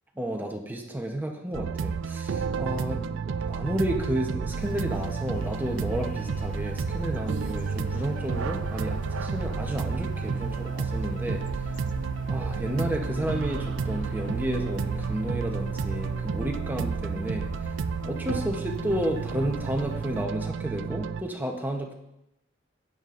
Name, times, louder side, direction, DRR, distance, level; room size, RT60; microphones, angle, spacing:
voice 1, 0.2-3.1 3.5-11.4 12.3-17.5 18.0-21.9, right 1 dB, 10° right, 2 dB, 0.8 m, -31 dB
sound 1, 1.5-21.2, right 5 dB, 75° right, 0.4 m, -31 dB
sound 2, 4.6-20.3, left 4 dB, 40° left, 0.3 m, -42 dB
12.5 x 9.2 x 2.5 m, 0.87 s
head